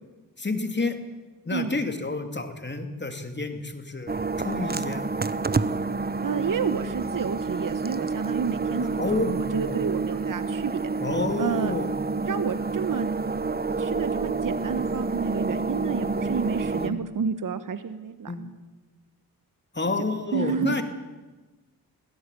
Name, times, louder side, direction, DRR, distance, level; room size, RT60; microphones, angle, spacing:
voice 1, 0.4-1.0 1.4-5.0 9.0-9.2 9.7-9.8 11.0-11.9 16.8-17.0 18.3-18.4 19.7-20.8, left 3 dB, 30° left, 6 dB, 2.8 m, -29 dB
sound 1, 4.1-16.9, right 4 dB, 25° right, 0.9 m, -28 dB
voice 2, 6.2-10.8 11.4-11.7 12.2-13.1 13.8-18.6 20.3-20.8, right 6 dB, 60° right, 12 dB, 1.2 m, -30 dB
21.5 x 16.0 x 8.5 m, 1.2 s
cardioid pair, 60°, 36 cm